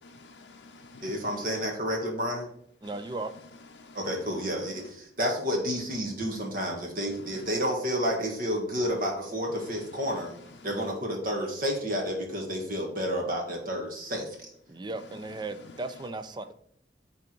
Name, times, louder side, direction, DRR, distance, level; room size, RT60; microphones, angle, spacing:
voice 1, 0.0-1.6 2.8-4.9 7.1-7.5 9.5-10.9 14.1-14.2 14.9-16.0, left 3 dB, 85° left, 0.5 m, -50 dB
voice 2, 1.0-2.5 3.9-10.3 10.6-14.3, equal, 50° right, 1.6 m, -30 dB
voice 3, 2.8-3.3 14.7-16.5, right 2 dB, 25° right, 0.4 m, -36 dB
8.9 x 3.5 x 4.5 m
head